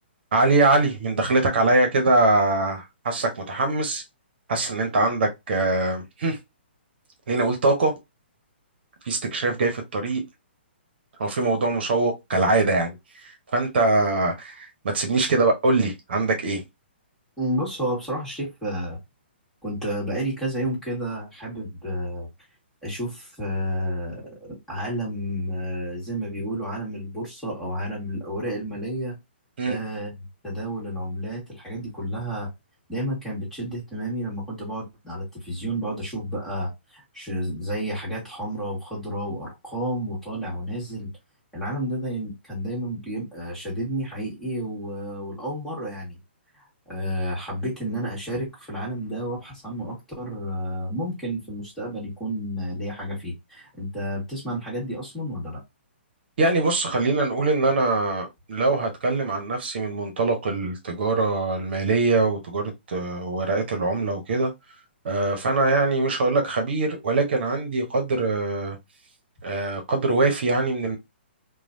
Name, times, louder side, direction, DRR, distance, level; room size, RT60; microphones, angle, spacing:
voice 1, 0.3-4.0 4.5-6.4 7.3-7.9 9.0-10.2 11.2-14.7 14.9-16.6 29.6-29.8 56.4-64.5 65.0-68.8 69.4-71.0, right 2 dB, 60° right, 0.9 m, -23 dB
voice 2, 17.4-19.0 19.6-22.3 22.8-29.1 29.6-30.2 30.4-32.5 32.9-41.1 41.5-46.2 46.9-55.6, equal, 5° left, 1.7 m, -31 dB
3.1 x 2.2 x 2.6 m
hypercardioid pair, 135°, 6 cm